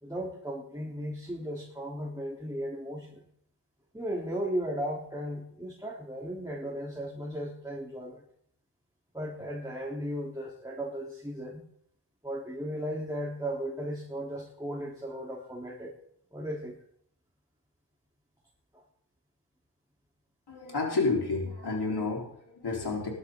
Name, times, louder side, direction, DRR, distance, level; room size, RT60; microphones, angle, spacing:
voice 1, 0.0-3.2 3.9-8.2 9.1-11.6 12.2-15.9 16.3-16.8 18.7-18.8, equal, 10° right, -4 dB, 3.6 m, -36 dB
voice 2, 20.5-23.1, left 3 dB, 70° left, -1 dB, 4.3 m, -30 dB
21.0 x 12.0 x 3.9 m, 0.69 s
cardioid pair, 55°, 41 cm